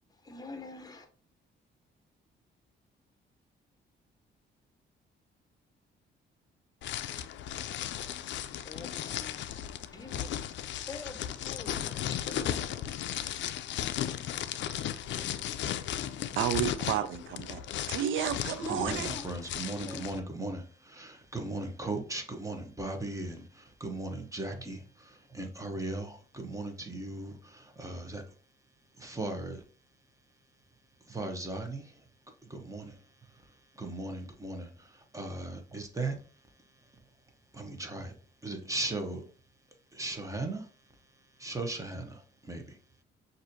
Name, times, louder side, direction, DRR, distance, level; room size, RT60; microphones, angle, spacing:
voice 1, 0.1-1.1 8.4-9.4 9.9-10.3 10.8-11.2 11.4-12.9 14.6-14.8 18.6-19.2 19.6-20.1, left 3 dB, 20° left, 0.8 m, -45 dB
sound 1, 6.8-20.2, left 10 dB, 65° left, 0.4 m, -36 dB
voice 2, 16.4-17.6 17.9-19.1, right 10 dB, 80° right, 0.4 m, -31 dB
voice 3, 18.7-28.2 29.0-29.6 31.1-32.0 32.5-33.0 33.8-36.2 37.5-38.1 38.4-39.2 39.9-40.7 41.4-42.8, right 2 dB, 15° right, 0.9 m, -37 dB
6.1 x 2.6 x 2.7 m
cardioid pair, 90°, 20 cm